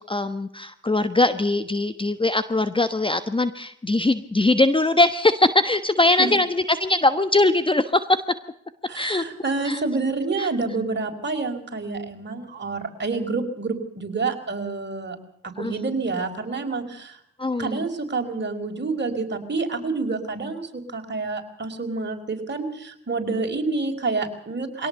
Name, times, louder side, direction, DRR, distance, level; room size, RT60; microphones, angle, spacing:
voice 1, 0.0-8.2 8.9-9.2 9.6-9.8 10.4-10.5 15.6-15.7 17.4-17.9, left 2 dB, 15° left, 12 dB, 1.2 m, -21 dB
voice 2, 8.9-15.2 15.6-17.2 17.6-24.9, right 3 dB, 35° right, 4 dB, 4.9 m, -28 dB
23.5 x 18.0 x 6.8 m, 0.68 s
hypercardioid pair, 50°, 32 cm